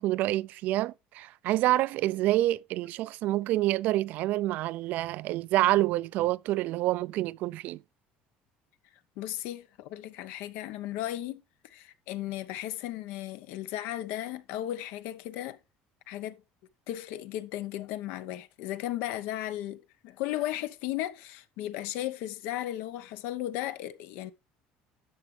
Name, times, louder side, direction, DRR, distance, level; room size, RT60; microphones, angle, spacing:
voice 1, 0.0-7.8, right 16 dB, 60° right, 0.4 m, -27 dB
voice 2, 9.2-11.4 11.7-15.6 16.1-16.4 16.9-24.3, left 13 dB, 75° left, 0.9 m, -35 dB
11.0 x 7.1 x 3.3 m
cardioid pair, 140°, 3 cm